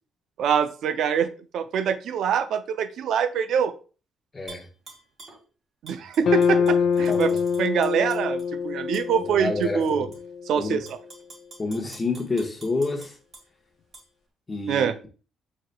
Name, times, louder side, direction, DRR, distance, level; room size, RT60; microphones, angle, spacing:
voice 1, 0.4-3.7 5.8-7.3 7.6-10.1 10.5-11.0 14.7-14.9, right 7 dB, 75° right, 0.4 m, -24 dB
voice 2, 4.3-4.7 6.6-6.7 7.1-7.4 9.3-10.1 10.6-10.8 11.6-13.2 14.5-15.1, left 3 dB, 25° left, 1.1 m, -29 dB
Tap / Glass, 4.5-5.4 5.9-8.5 8.9-9.1 9.6-10.2 10.7-13.5 13.9-14.0, right 3 dB, 50° right, 1.9 m, -47 dB
sound 1, 6.2-10.6, left 6 dB, 60° left, 0.5 m, -25 dB
4.8 x 4.0 x 2.2 m
cardioid pair, 90°, 0 cm